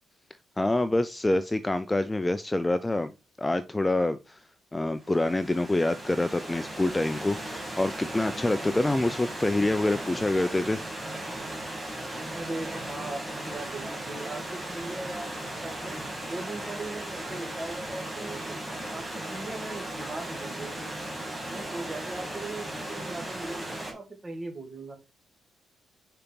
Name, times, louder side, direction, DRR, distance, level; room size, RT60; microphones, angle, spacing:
voice 1, 0.6-3.1 3.4-4.4 4.7-10.8, left 2 dB, 15° left, 0.5 m, -26 dB
Stream / Liquid, 5.0-23.9, right 1 dB, 5° right, 2.7 m, -37 dB
voice 2, 12.3-16.0 16.2-18.6 18.9-20.9 21.5-25.0, right 2 dB, 25° right, 1.9 m, -39 dB
5.0 x 4.4 x 5.3 m
cardioid pair, 90°, 0 cm